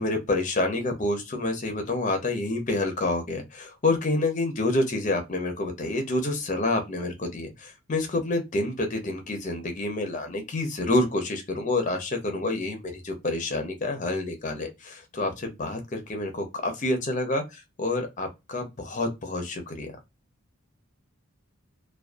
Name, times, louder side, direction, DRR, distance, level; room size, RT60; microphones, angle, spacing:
voice 1, 0.0-20.0, left 2 dB, 35° left, 0.5 m, -28 dB
2.3 x 2.2 x 2.3 m
head